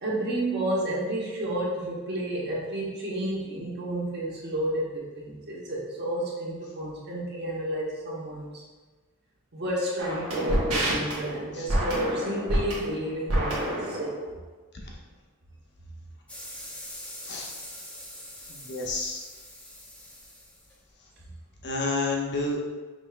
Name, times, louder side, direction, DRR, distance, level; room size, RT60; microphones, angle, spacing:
voice 1, 0.0-8.6 9.5-14.2, right 1 dB, 50° right, -5 dB, 1.1 m, -31 dB
sound 1, 10.0-14.2, right 1 dB, 85° right, 1.1 m, -28 dB
sound 2, 16.3-21.3, left 1 dB, 5° left, 0.6 m, -43 dB
voice 2, 18.5-19.3 21.6-22.6, left 3 dB, 50° left, -1 dB, 0.8 m, -30 dB
5.2 x 3.3 x 2.4 m, 1.3 s
head